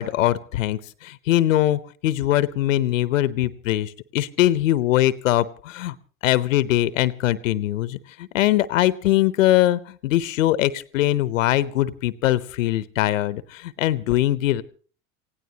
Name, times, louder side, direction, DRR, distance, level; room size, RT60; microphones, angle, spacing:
voice 1, 0.0-5.9 6.2-14.6, left 14 dB, 75° left, 18 dB, 0.8 m, -22 dB
27.5 x 16.5 x 2.9 m, 0.41 s
hypercardioid pair, 75°, 39 cm